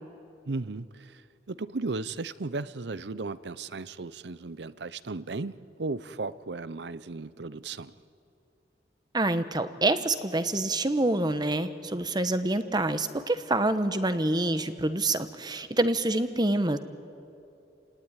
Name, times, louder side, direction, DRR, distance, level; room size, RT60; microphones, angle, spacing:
voice 1, 0.5-7.9, right 3 dB, 75° right, 16 dB, 0.7 m, -35 dB
voice 2, 9.1-16.8, right 2 dB, 25° right, 11 dB, 1.1 m, -26 dB
29.5 x 18.5 x 9.9 m, 2.7 s
head